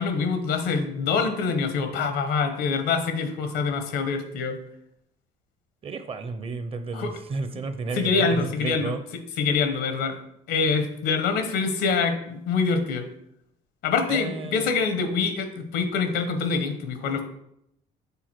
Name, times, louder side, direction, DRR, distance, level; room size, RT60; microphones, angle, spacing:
voice 1, 0.0-4.6 6.9-7.1 7.9-8.9 9.4-10.2 10.5-13.1 13.8-17.2, left 5 dB, 85° left, 8 dB, 1.1 m, -25 dB
voice 2, 5.8-9.0 14.1-14.7, right 4 dB, 35° right, 9 dB, 0.7 m, -32 dB
7.0 x 4.1 x 4.6 m, 0.76 s
cardioid pair, 110°, 17 cm